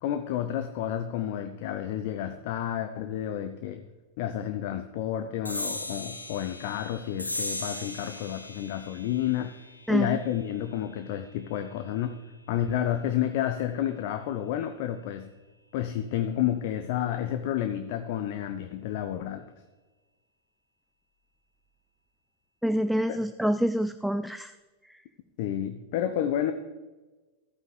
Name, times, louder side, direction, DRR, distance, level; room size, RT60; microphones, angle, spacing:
voice 1, 0.0-3.9 4.2-9.6 9.9-12.2 12.5-15.3 15.7-19.5 23.1-23.2 25.4-26.5, left 11 dB, 50° left, 8 dB, 0.6 m, -30 dB
sound 1, 5.4-12.3, left 1 dB, 85° left, 0.8 m, -39 dB
voice 2, 9.9-10.2 22.6-24.5, equal, ahead, 11 dB, 0.3 m, -26 dB
13.5 x 8.9 x 3.3 m, 1.2 s
figure-of-eight pair, 90°, 0 cm